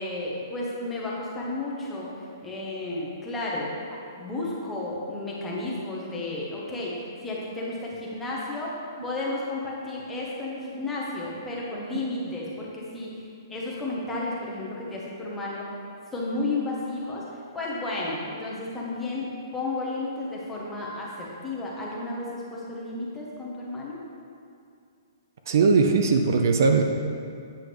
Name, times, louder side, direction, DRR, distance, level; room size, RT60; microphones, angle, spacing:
voice 1, 0.0-3.8 4.1-6.9 7.2-8.7 9.0-15.6 16.1-17.2 17.5-19.3 19.5-24.0, left 2 dB, 5° left, -5 dB, 0.8 m, -32 dB
voice 2, 25.5-26.8, right 4 dB, 50° right, 4 dB, 0.4 m, -20 dB
8.2 x 5.7 x 3.3 m, 2.4 s
hypercardioid pair, 170°, 2 cm